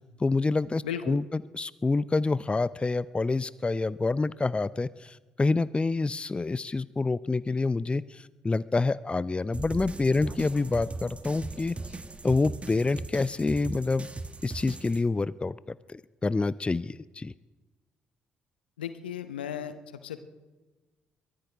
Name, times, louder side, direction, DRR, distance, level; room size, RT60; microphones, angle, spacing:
voice 1, 0.2-11.8 12.2-14.1 14.4-17.3, left 3 dB, 20° left, 18 dB, 0.4 m, -27 dB
voice 2, 0.8-1.2 18.8-19.7 20.0-20.2, left 9 dB, 85° left, 11 dB, 0.8 m, -35 dB
sound 1, 9.5-15.0, right 3 dB, 25° right, 1.2 m, -39 dB
23.0 x 16.5 x 3.4 m, 1.2 s
figure-of-eight pair, 45°, 5 cm